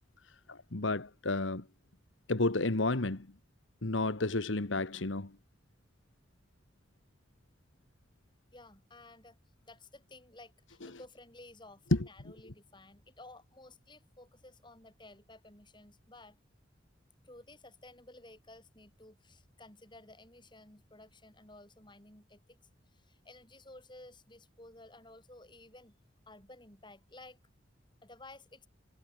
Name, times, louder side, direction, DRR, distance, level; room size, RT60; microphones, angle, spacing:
voice 1, 0.5-1.7 2.3-3.3 3.8-5.4 10.8-10.9 11.9-12.1, left 2 dB, 80° left, 1.6 m, -31 dB
voice 2, 8.5-9.4 9.7-16.4 17.2-22.6 22.9-25.9 26.3-27.4 28.0-28.7, left 2 dB, 25° left, 6.2 m, -54 dB
head